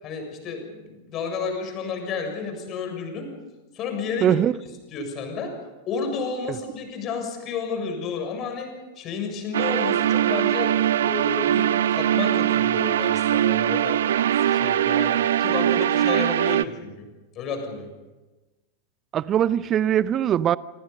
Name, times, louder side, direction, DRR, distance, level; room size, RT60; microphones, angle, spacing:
voice 1, 0.0-3.3 3.7-4.4 4.9-5.5 5.9-8.7 9.0-14.0 14.3-17.1 17.4-17.9, left 5 dB, 35° left, 7.1 m, -31 dB
voice 2, 4.2-4.5 19.1-20.6, right 10 dB, 30° right, 0.8 m, -21 dB
sound 1, 9.5-16.6, right 11 dB, 60° right, 0.7 m, -21 dB
26.5 x 26.0 x 5.5 m
figure-of-eight pair, 90°, 0 cm